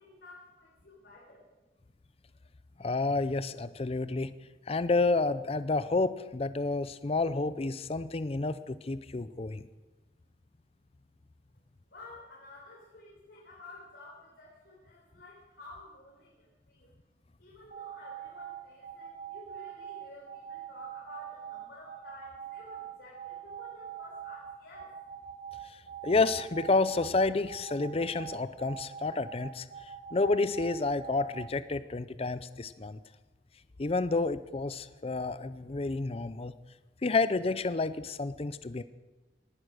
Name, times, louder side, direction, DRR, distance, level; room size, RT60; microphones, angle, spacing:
voice 1, 0.0-1.4 11.9-16.9 17.4-24.9, left 2 dB, 75° left, -5 dB, 4.5 m, -52 dB
voice 2, 2.8-4.3 4.7-9.7 25.7-25.8 26.0-29.7 30.1-33.0 33.8-36.5 37.0-38.8, left 3 dB, 35° left, 14 dB, 0.5 m, -30 dB
sound 1, 17.6-31.4, right 9 dB, 50° right, 4.1 m, -43 dB
18.5 x 11.5 x 6.3 m, 1.2 s
head